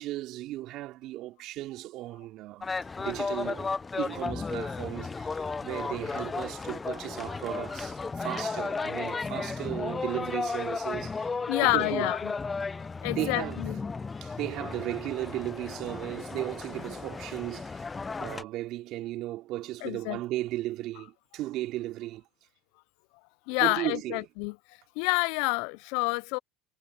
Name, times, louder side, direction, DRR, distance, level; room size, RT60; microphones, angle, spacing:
voice 1, 0.0-2.7 3.0-12.1 13.1-13.6 14.2-17.9 18.2-22.2 23.6-24.2, right 16 dB, 60° right, 3.5 m, -35 dB
sound 1, 2.6-18.4, left 4 dB, 20° left, 0.7 m, -34 dB
voice 2, 11.5-12.3 13.0-13.8 19.8-20.2 23.5-24.5 25.0-26.4, left 29 dB, 70° left, 0.4 m, -28 dB
hypercardioid pair, 85°, 0 cm